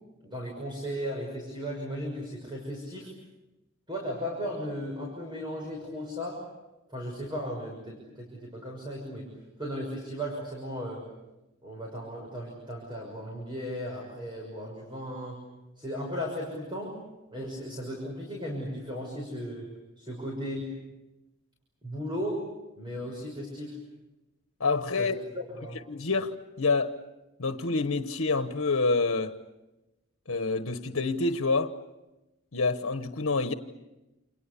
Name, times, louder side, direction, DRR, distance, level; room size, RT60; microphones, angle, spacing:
voice 1, 0.2-3.1 3.9-6.4 6.9-9.3 9.6-11.0 11.6-15.4 15.8-17.0 17.3-20.7 21.8-22.4 22.8-23.8 24.9-25.8, equal, 20° right, 6.3 m, -36 dB
voice 2, 24.6-25.1 25.9-27.0 27.4-29.4 30.3-31.7 32.5-33.5, left 3 dB, 90° left, 1.2 m, -27 dB
29.0 x 28.5 x 7.1 m
head